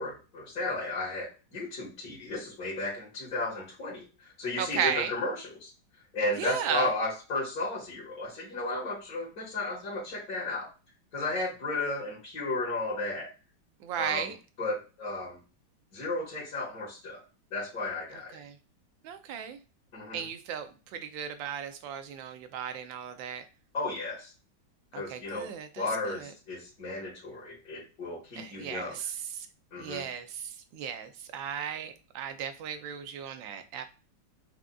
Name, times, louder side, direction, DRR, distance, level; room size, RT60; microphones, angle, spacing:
voice 1, 0.0-5.7 6.1-10.7 11.1-13.3 14.0-14.3 14.6-15.4 15.9-17.2 17.5-18.4 19.9-20.2 23.7-24.3 24.9-25.5 25.8-29.0 29.7-30.0, left 2 dB, 50° left, -8 dB, 1.6 m, -34 dB
voice 2, 4.6-5.1 6.4-6.9 13.8-14.3 18.3-18.5 19.0-19.6 20.1-23.4 24.9-26.2 28.4-29.1 29.4-29.5 29.8-33.9, right 8 dB, 75° right, 8 dB, 1.2 m, -35 dB
5.0 x 2.4 x 2.3 m, 0.33 s
omnidirectional pair, 2.2 m